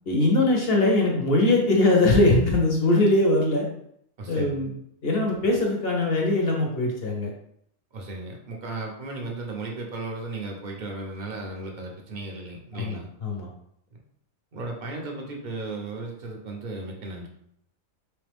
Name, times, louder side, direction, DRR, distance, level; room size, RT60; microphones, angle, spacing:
voice 1, 0.1-3.7 4.3-4.7 5.0-7.3 12.7-13.5, left 2 dB, 50° left, -1 dB, 0.8 m, -21 dB
voice 2, 4.2-4.6 7.9-13.1 14.5-17.3, right 2 dB, 50° right, 0 dB, 0.6 m, -35 dB
3.4 x 3.2 x 3.4 m, 0.72 s
omnidirectional pair, 1.5 m